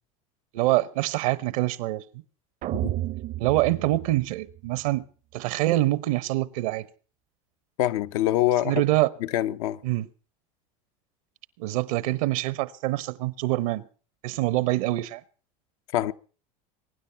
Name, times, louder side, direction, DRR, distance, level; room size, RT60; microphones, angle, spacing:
voice 1, 0.5-2.0 3.4-5.0 5.3-6.9 8.6-9.1 9.8-10.1 11.6-13.8 14.2-15.2, right 17 dB, 75° right, 1.0 m, -25 dB
sound 1, 2.6-4.9, right 15 dB, 45° right, 0.7 m, -32 dB
voice 2, 7.8-8.8 9.2-9.8 15.9-16.1, left 14 dB, 75° left, 0.8 m, -25 dB
23.0 x 10.0 x 5.8 m
supercardioid pair, 110°, 18 cm